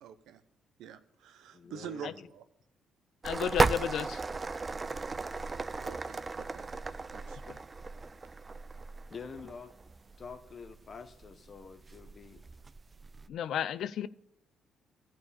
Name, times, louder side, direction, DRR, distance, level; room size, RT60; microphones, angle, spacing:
voice 1, 0.0-0.4 0.8-2.4 5.8-6.7 7.1-7.4, right 8 dB, 85° right, 11 dB, 0.8 m, -46 dB
voice 2, 1.5-2.3 9.1-9.7 10.2-12.4, left 5 dB, 45° left, 10 dB, 1.0 m, -47 dB
voice 3, 3.2-4.2 13.3-14.1, left 9 dB, 70° left, 17 dB, 0.4 m, -32 dB
sound 1, 3.2-13.3, right 3 dB, 30° right, 0.4 m, -36 dB
11.5 x 4.8 x 8.3 m, 0.83 s
cardioid pair, 90°, 0 cm